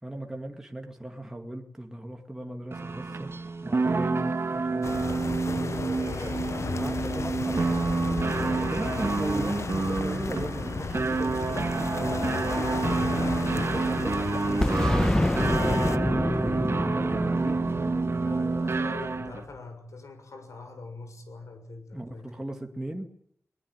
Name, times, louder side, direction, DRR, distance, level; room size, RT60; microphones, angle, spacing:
voice 1, 0.0-3.3 3.6-5.8 6.8-7.7 8.7-12.1 13.1-15.9 16.5-18.8 21.9-23.1, right 1 dB, 10° right, 3 dB, 2.2 m, -38 dB
sound 1, 2.7-19.4, right 3 dB, 55° right, 1.7 m, -29 dB
sound 2, 4.8-16.0, left 4 dB, 65° left, 1.0 m, -33 dB
voice 2, 6.5-7.7 18.2-22.3, left 3 dB, 85° left, 7 dB, 6.5 m, -44 dB
Boom, 14.6-19.3, left 1 dB, 15° left, 1.4 m, -27 dB
21.5 x 20.5 x 9.4 m, 0.71 s
wide cardioid pair, 95°, 5 cm